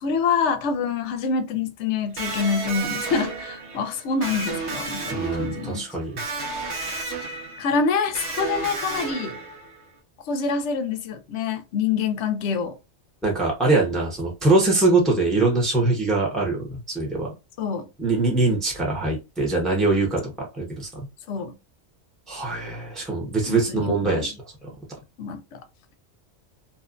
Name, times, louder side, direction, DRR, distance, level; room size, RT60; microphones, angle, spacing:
voice 1, 0.0-5.9 7.6-9.4 10.3-12.8 17.6-17.9 21.3-21.6 23.5-24.3 25.2-25.6, left 5 dB, 75° left, 0.9 m, -26 dB
Electric guitar, 2.2-9.9, right 3 dB, 70° right, 1.1 m, -32 dB
voice 2, 5.1-6.2 13.2-17.3 18.0-21.0 22.3-24.3, right 3 dB, ahead, 0.7 m, -23 dB
2.9 x 2.2 x 2.4 m
omnidirectional pair, 1.2 m